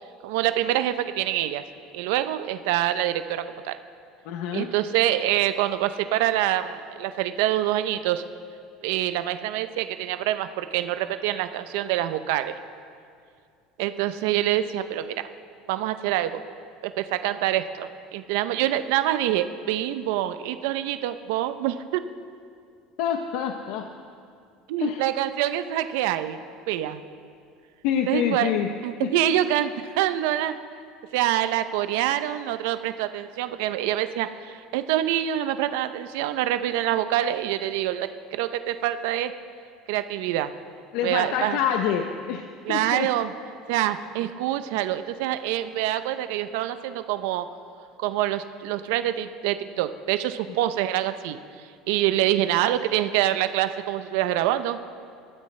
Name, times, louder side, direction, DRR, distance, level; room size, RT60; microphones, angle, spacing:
voice 1, 0.2-1.6 1.9-3.8 4.5-8.2 8.8-12.6 13.8-15.3 15.7-16.4 16.8-22.0 24.7-26.4 26.7-27.0 28.1-28.6 28.8-30.6 31.1-39.3 39.9-40.5 41.0-41.6 42.7-43.3 43.7-47.5 48.0-51.4 51.9-54.8, right 12 dB, 75° right, 10 dB, 0.5 m, -25 dB
voice 2, 4.3-4.7 23.0-23.9 24.8-25.1 27.8-28.7 29.0-29.1 40.9-43.1, left 8 dB, 60° left, 5 dB, 0.7 m, -27 dB
20.5 x 13.0 x 3.2 m, 2.3 s
cardioid pair, 175°, 0 cm